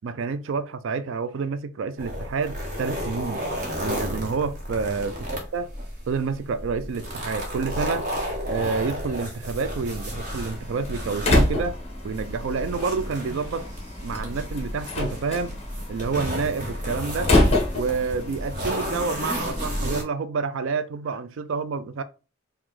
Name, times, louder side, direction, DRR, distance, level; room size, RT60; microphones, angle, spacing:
voice 1, 0.0-3.5 3.8-5.7 6.1-8.1 8.4-11.8 12.0-13.7 14.0-15.6 15.9-17.3 17.7-22.0, right 4 dB, 60° right, 0.4 m, -28 dB
sound 1, 2.0-20.0, equal, 35° right, 1.1 m, -32 dB
Slam, 10.2-19.6, left 1 dB, 30° left, 0.8 m, -27 dB
4.7 x 2.3 x 3.8 m
head